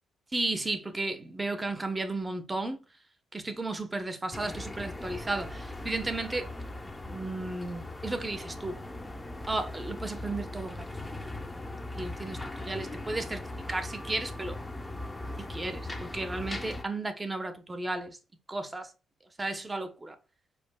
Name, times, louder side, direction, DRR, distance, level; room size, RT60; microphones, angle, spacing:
voice 1, 0.3-2.8 3.3-6.5 7.0-8.8 9.5-10.8 11.1-11.2 11.9-14.6 15.4-18.2 18.5-18.9 19.4-20.1, right 2 dB, 20° right, 1.1 m, -34 dB
sound 1, 4.3-16.8, left 2 dB, 15° left, 0.8 m, -39 dB
5.2 x 4.4 x 2.3 m
cardioid pair, 90°, 0 cm